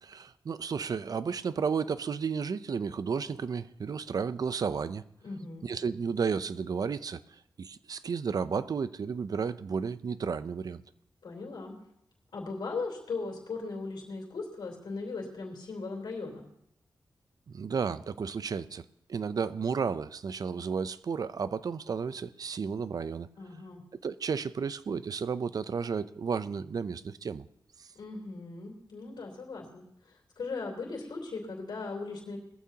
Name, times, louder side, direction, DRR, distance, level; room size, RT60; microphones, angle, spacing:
voice 1, 0.0-5.0 5.6-7.2 7.6-10.8 17.5-18.8 19.1-23.3 24.0-27.5 27.8-27.9, right 6 dB, 55° right, 14 dB, 0.5 m, -32 dB
voice 2, 5.2-5.7 11.2-11.7 12.3-16.5 23.4-23.8 27.9-32.4, left 3 dB, 80° left, -2 dB, 3.3 m, -38 dB
19.5 x 14.5 x 2.9 m, 0.75 s
wide cardioid pair, 115°, 7 cm